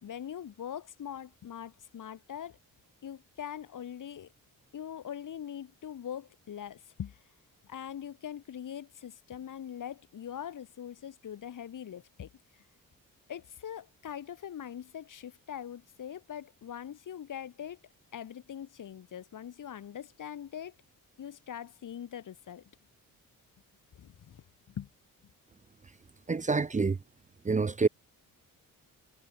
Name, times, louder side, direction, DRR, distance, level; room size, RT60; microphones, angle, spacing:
voice 1, 0.0-2.6 3.0-4.3 4.7-7.2 7.6-12.3 13.3-17.8 18.1-20.7 21.2-22.6 23.9-24.9, left 9 dB, 60° left, 3.3 m, -42 dB
voice 2, 26.3-27.0 27.4-27.9, right 4 dB, 20° right, 0.7 m, -27 dB
cardioid pair, 110°, 35 cm